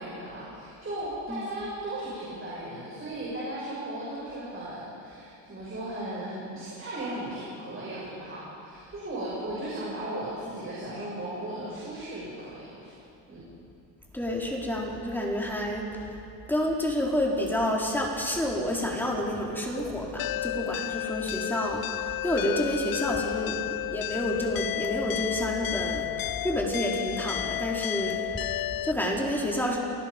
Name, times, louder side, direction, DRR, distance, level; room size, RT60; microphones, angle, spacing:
voice 1, 0.0-13.0 13.3-13.5, right 1 dB, 30° right, -6 dB, 7.1 m, -36 dB
voice 2, 14.1-16.2 16.5-29.8, equal, 5° left, -3 dB, 4.1 m, -29 dB
sound 1, 20.2-28.9, left 15 dB, 55° left, 0.5 m, -32 dB
29.0 x 19.5 x 5.3 m, 2.7 s
cardioid pair, 120°, 42 cm